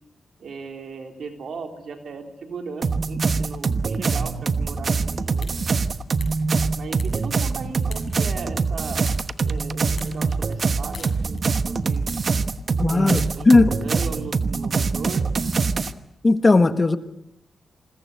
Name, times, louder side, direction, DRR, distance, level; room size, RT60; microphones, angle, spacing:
voice 1, 0.4-5.5 6.8-9.1 9.4-11.4 11.7-12.0 12.9-15.3, right 5 dB, 75° right, 4 dB, 3.8 m, -37 dB
sound 1, 2.8-15.9, right 4 dB, 55° right, 1.1 m, -24 dB
sound 2, 5.3-13.9, left 4 dB, 55° left, 7.5 m, -47 dB
voice 2, 12.8-13.7 16.2-17.0, left 3 dB, 30° left, 10 dB, 1.5 m, -16 dB
28.0 x 22.0 x 6.9 m, 0.78 s
cardioid pair, 75°, 0 cm